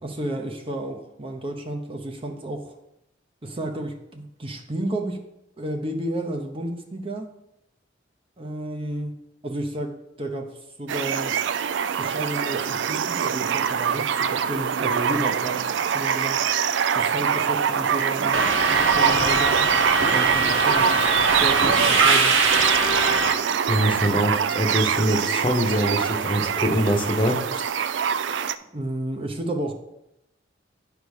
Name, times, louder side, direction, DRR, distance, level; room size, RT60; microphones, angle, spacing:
voice 1, 0.0-2.7 3.4-5.2 5.6-7.3 8.4-9.2 9.4-10.5 10.8-11.4 12.0-16.4 16.9-19.7 20.1-22.4 28.7-29.7, right 1 dB, 30° right, 4 dB, 0.8 m, -31 dB
sound 1, 10.9-28.5, right 7 dB, 70° right, 0.4 m, -24 dB
Subway metro underground, 18.3-23.3, right 3 dB, 85° right, 0.9 m, -21 dB
voice 2, 23.7-27.4, equal, 25° left, 4 dB, 0.9 m, -23 dB
9.4 x 3.5 x 6.3 m, 0.84 s
head